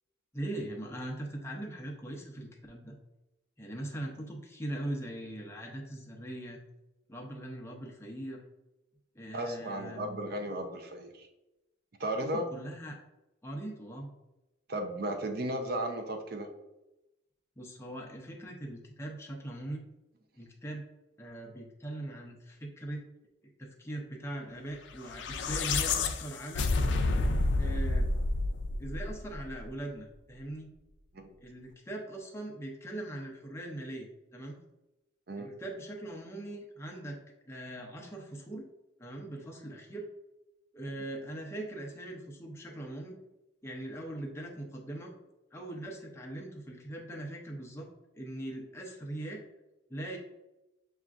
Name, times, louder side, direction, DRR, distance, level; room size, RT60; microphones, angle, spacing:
voice 1, 0.3-3.0 3.6-6.6 7.1-8.4 9.1-10.3 12.2-13.0 13.4-14.1 17.6-19.8 20.3-20.8 21.2-23.0 23.6-26.7 27.6-28.1 28.8-30.7 31.4-34.6 35.4-37.2 37.5-38.7 39.0-40.1 40.7-43.1 43.6-45.1 45.5-47.9 48.2-49.4 49.9-50.2, right 1 dB, 15° left, 0 dB, 0.6 m, -41 dB
voice 2, 9.3-11.3 12.0-12.4 14.7-16.5 31.1-31.3 35.3-35.5, right 1 dB, 50° right, 5 dB, 0.5 m, -35 dB
sound 1, 25.0-29.4, left 2 dB, 60° left, 0.4 m, -29 dB
6.9 x 2.4 x 2.4 m, 0.97 s
head